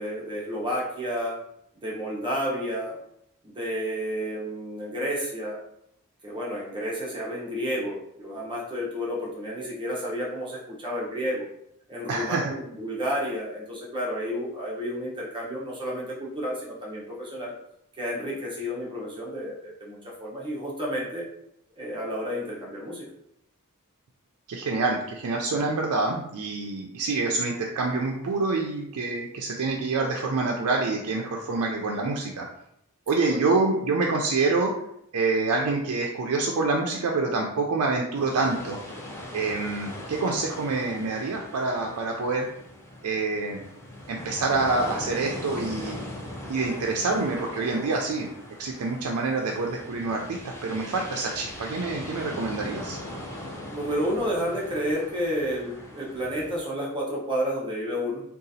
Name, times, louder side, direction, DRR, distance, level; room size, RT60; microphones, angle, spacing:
voice 1, 0.0-1.4 1.8-3.0 3.4-5.6 6.2-11.5 11.9-17.5 18.0-21.2 21.8-23.1 33.3-33.4 53.7-58.2, equal, 20° right, -5 dB, 0.8 m, -31 dB
voice 2, 12.1-12.5 24.5-32.5 33.1-34.7 35.1-38.8 39.3-42.5 43.0-43.6 44.1-46.0 46.5-48.3 48.6-53.0, right 3 dB, 85° right, 0 dB, 0.4 m, -26 dB
sound 1, 38.1-56.6, left 1 dB, 10° left, 0.5 m, -40 dB
3.9 x 2.3 x 2.6 m, 0.76 s
head